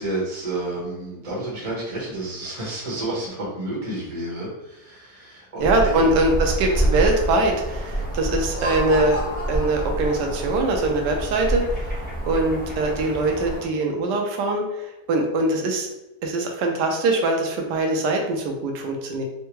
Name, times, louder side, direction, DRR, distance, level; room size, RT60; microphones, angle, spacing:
voice 1, 0.0-6.1, right 2 dB, 25° right, -6 dB, 0.9 m, -30 dB
sound 1, 5.6-13.6, right 1 dB, 10° left, 0.5 m, -27 dB
voice 2, 5.6-11.9 12.3-15.9 16.2-19.2, right 2 dB, 85° right, 2 dB, 1.2 m, -22 dB
Laughter, 8.4-10.7, left 1 dB, 45° left, 1.4 m, -32 dB
3.6 x 2.2 x 3.0 m, 0.94 s
omnidirectional pair, 1.8 m